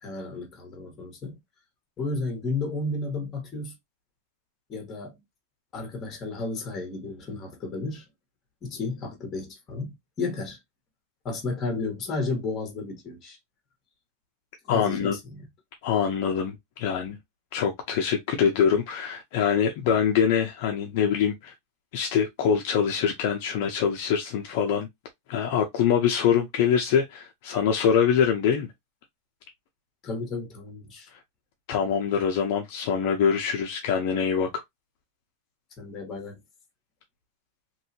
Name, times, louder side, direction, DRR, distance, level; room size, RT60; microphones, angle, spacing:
voice 1, 0.0-1.4 2.0-3.7 4.7-5.2 5.7-8.1 8.6-10.6 11.2-13.4 14.7-15.5 30.0-31.1 35.8-36.4, left 3 dB, 25° left, 1.4 m, -33 dB
voice 2, 14.7-15.2 15.8-17.2 17.5-21.5 21.9-24.9 25.3-28.7 31.7-34.5, left 7 dB, 55° left, 0.7 m, -24 dB
3.0 x 2.7 x 2.8 m
supercardioid pair, 155°, 0 cm